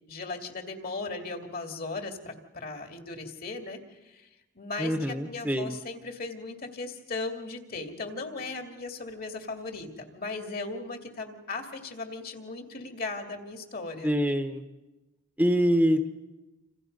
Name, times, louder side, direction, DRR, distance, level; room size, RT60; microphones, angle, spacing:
voice 1, 0.1-3.8 4.0-4.3 4.5-14.2, left 3 dB, 50° left, 4 dB, 2.6 m, -37 dB
voice 2, 4.8-5.7 14.0-14.6 15.4-16.1, equal, 10° right, 6 dB, 1.1 m, -25 dB
28.0 x 27.5 x 5.4 m, 1.1 s
head